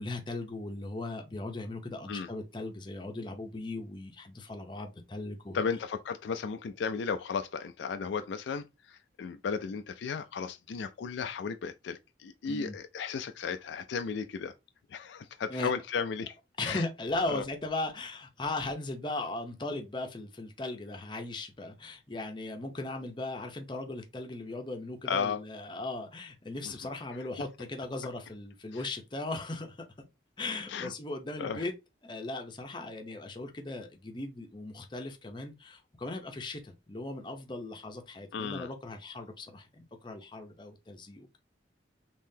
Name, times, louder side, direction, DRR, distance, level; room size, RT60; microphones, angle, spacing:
voice 1, 0.0-5.6 12.5-12.8 15.5-15.7 16.6-29.8 30.4-31.7 32.0-41.4, left 2 dB, 25° left, 0.6 m, -38 dB
voice 2, 5.5-14.5 14.9-16.4 16.6-16.8 17.3-17.4 25.1-25.4 26.6-26.7 28.7-28.8 30.7-30.9 31.4-31.6 38.3-38.7, left 6 dB, 70° left, 0.3 m, -34 dB
3.7 x 2.9 x 2.7 m
head